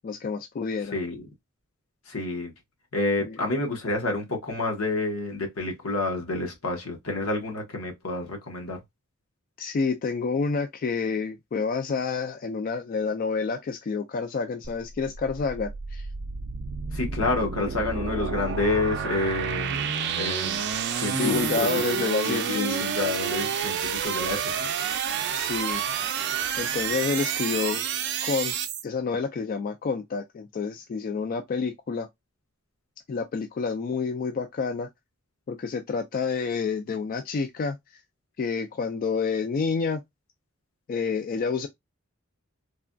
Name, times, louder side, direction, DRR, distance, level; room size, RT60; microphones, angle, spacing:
voice 1, 0.0-1.0 3.2-3.4 9.6-16.1 21.1-22.9 25.3-25.8 26.6-27.9 28.2-28.6 28.8-32.1 33.1-34.9 35.5-37.8 38.4-40.0 40.9-41.7, left 5 dB, 40° left, 0.3 m, -28 dB
voice 2, 0.9-1.3 2.1-2.5 2.9-8.8 16.9-20.6 21.0-21.9 22.2-24.5, left 2 dB, 80° left, 1.1 m, -29 dB
sound 1, 14.6-28.8, right 7 dB, 55° right, 0.4 m, -29 dB
3.3 x 2.2 x 2.5 m
head